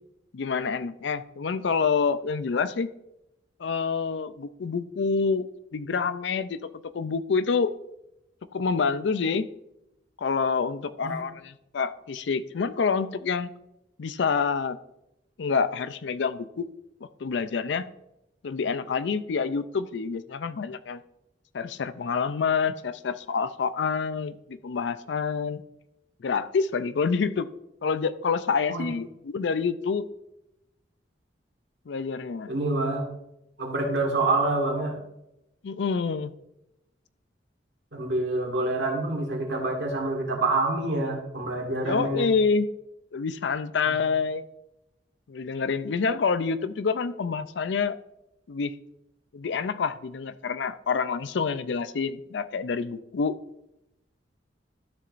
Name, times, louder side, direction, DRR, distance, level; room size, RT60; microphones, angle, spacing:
voice 1, 0.3-2.9 3.6-7.7 8.5-9.5 10.2-13.5 14.0-14.8 15.4-16.7 17.2-17.9 18.4-21.0 21.5-25.6 26.2-27.5 27.8-30.1 31.9-32.6 35.6-36.3 41.8-42.7 43.1-44.5 45.3-48.0 48.5-48.7 49.3-53.3, left 5 dB, 70° left, 13 dB, 0.4 m, -27 dB
voice 2, 32.5-33.0 33.6-35.0 37.9-42.3 43.9-44.0, right 2 dB, 65° right, 0 dB, 1.9 m, -27 dB
12.5 x 6.8 x 2.5 m, 0.87 s
head